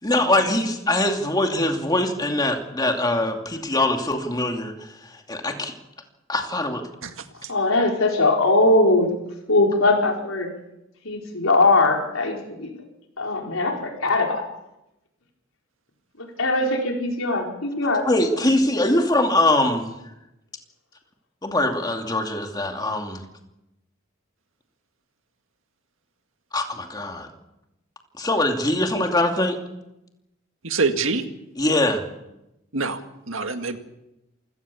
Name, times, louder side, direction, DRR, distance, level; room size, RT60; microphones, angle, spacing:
voice 1, 0.0-4.7 5.3-5.7 6.3-6.8 18.0-19.9 21.4-23.2 26.5-27.3 28.2-29.6 31.6-32.0, left 1 dB, 20° left, 3 dB, 2.6 m, -22 dB
voice 2, 7.5-9.1 9.5-10.5 11.0-12.7 13.2-14.4 16.2-18.0, left 2 dB, 80° left, 1 dB, 4.7 m, -20 dB
voice 3, 30.6-31.2 32.7-33.0 33.3-33.8, right 4 dB, 75° right, 7 dB, 1.9 m, -24 dB
27.5 x 17.0 x 7.1 m, 0.91 s
head